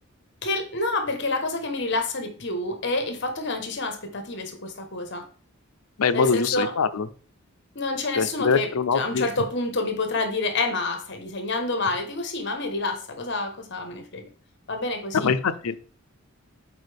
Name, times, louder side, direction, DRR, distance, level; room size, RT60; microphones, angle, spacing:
voice 1, 0.4-5.2 6.1-6.7 7.7-14.3 14.7-15.3, left 2 dB, 55° left, 5 dB, 1.2 m, -28 dB
voice 2, 6.0-7.1 8.2-9.3 15.1-15.8, left 5 dB, 80° left, 12 dB, 0.5 m, -23 dB
8.3 x 4.5 x 3.4 m, 0.42 s
head